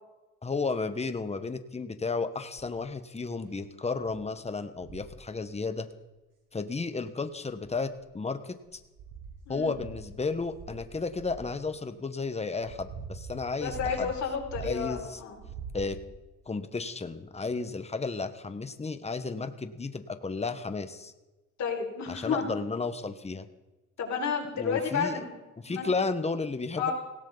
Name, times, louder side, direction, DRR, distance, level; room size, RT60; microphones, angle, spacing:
voice 1, 0.4-5.9 6.5-7.9 8.1-8.5 9.5-14.1 14.6-15.2 15.7-16.0 16.5-21.1 22.1-23.5 24.6-25.2 25.6-26.9, left 4 dB, 20° left, 9 dB, 1.3 m, -33 dB
sound 1, 2.6-2.9 3.5-3.6 4.0-4.3 4.7-5.2 6.6-6.7 7.5-8.2 8.7-11.5 12.2-15.0 15.3-16.3 17.1-17.2, right 4 dB, 90° right, 4.4 m, -44 dB
voice 2, 9.5-9.8 13.6-15.4 21.6-22.4 24.0-25.3 25.7-25.9 26.8-26.9, left 6 dB, 65° left, -1 dB, 5.6 m, -31 dB
18.0 x 17.5 x 4.1 m, 1.1 s
cardioid pair, 90°, 30 cm